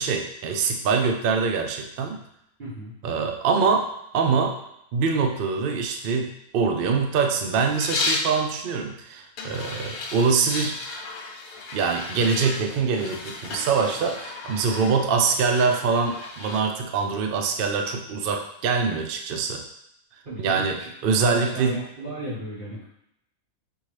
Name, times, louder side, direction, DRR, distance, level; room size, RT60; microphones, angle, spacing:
voice 1, 0.0-2.2 3.0-3.9 4.1-4.6 4.9-10.8 11.7-19.6 20.4-21.8, right 5 dB, 80° right, 4 dB, 0.5 m, -24 dB
voice 2, 2.6-2.9 20.2-20.9 21.2-22.8, right 1 dB, 40° right, -10 dB, 1.1 m, -34 dB
sound 1, 7.7-8.3 9.4-16.6, left 3 dB, 75° left, 1.2 m, -34 dB
5.3 x 2.7 x 3.2 m, 0.79 s
omnidirectional pair, 1.6 m